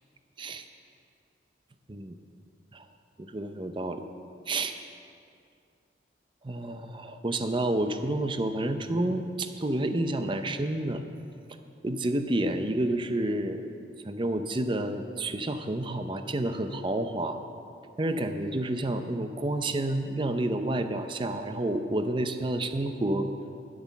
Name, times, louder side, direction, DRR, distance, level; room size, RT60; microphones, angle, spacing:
voice 1, 3.3-4.0 4.5-4.7 6.4-11.0 11.8-13.7 14.0-17.4 18.0-23.3, right 1 dB, 25° right, 8 dB, 0.6 m, -29 dB
10.5 x 9.4 x 7.1 m, 2.5 s
head